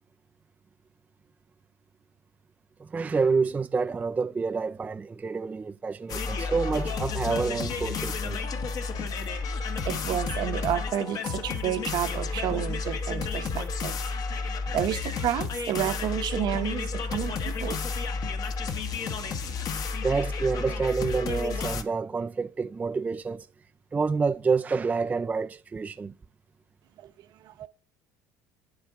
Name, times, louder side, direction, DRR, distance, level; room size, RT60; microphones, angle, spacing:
voice 1, 2.8-8.4 9.2-9.3 20.0-23.5 23.9-26.1, right 4 dB, 20° right, 0.3 m, -28 dB
sound 1, 6.1-21.8, left 4 dB, 50° left, 1.3 m, -31 dB
voice 2, 9.8-14.0 14.7-17.8, right 11 dB, 60° right, 0.9 m, -30 dB
9.4 x 8.0 x 3.7 m
supercardioid pair, 100°, 8 cm